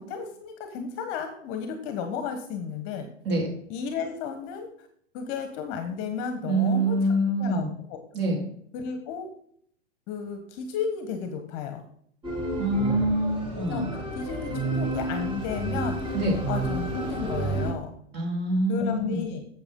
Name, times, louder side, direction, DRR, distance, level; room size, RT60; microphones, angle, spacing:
voice 1, 0.0-3.1 3.7-4.7 5.1-8.0 8.7-9.3 10.1-11.8 13.5-16.0 16.5-17.9 18.7-19.4, left 6 dB, 35° left, 7 dB, 1.2 m, -33 dB
voice 2, 6.5-7.7 8.1-8.4 12.6-13.9 16.1-16.4 18.1-19.2, right 1 dB, 30° right, -1 dB, 3.5 m, -25 dB
sound 1, 12.2-17.7, right 2 dB, 15° right, 2.4 m, -31 dB
8.1 x 7.3 x 3.8 m, 0.65 s
hypercardioid pair, 125°, 37 cm